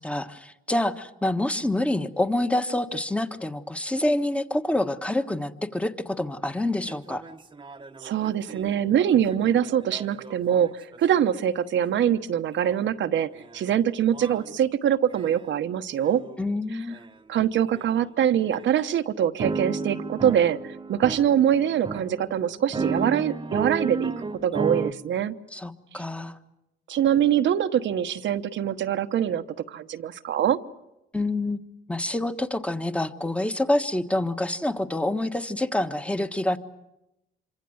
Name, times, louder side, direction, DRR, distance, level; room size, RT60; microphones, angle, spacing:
voice 1, 0.0-7.2 16.4-17.0 25.5-26.4 31.1-31.6 31.9-36.6, left 1 dB, 5° left, 9 dB, 1.4 m, -27 dB
sound 1, 6.4-6.5 6.9-11.2 12.6-12.7 13.4-13.6 14.1-14.5 15.1-15.5 16.1-16.4 16.9-17.1 17.7-17.9 18.5-18.7 19.4-24.9, right 4 dB, 25° right, 1.1 m, -33 dB
voice 2, 8.0-16.2 17.3-24.1 24.4-25.4 26.9-30.6, right 9 dB, 70° right, 10 dB, 1.1 m, -24 dB
26.5 x 24.5 x 7.9 m, 0.90 s
cardioid pair, 90°, 20 cm